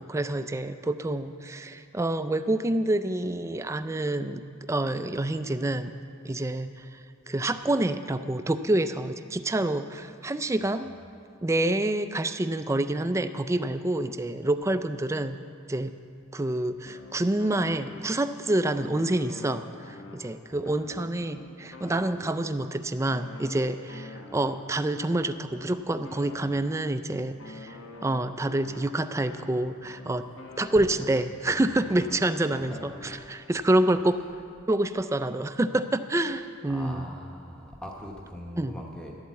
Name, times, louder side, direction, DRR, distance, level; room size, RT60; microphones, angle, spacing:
voice 1, 0.0-4.4 4.7-6.0 6.2-7.0 7.3-10.9 11.4-15.4 15.7-15.9 16.3-27.8 28.0-30.3 30.6-32.7 33.3-34.2 34.7-37.0 38.6-38.8, right 1 dB, 15° right, 11 dB, 0.4 m, -27 dB
sound 1, 16.8-18.4 18.7-22.7 23.1-27.0 27.4-31.3 31.7-33.5, left 3 dB, 70° left, 1.1 m, -46 dB
voice 2, 32.5-33.0 34.0-34.1 36.6-39.1, equal, 5° left, -1 dB, 0.9 m, -42 dB
12.0 x 8.5 x 8.1 m, 2.3 s
head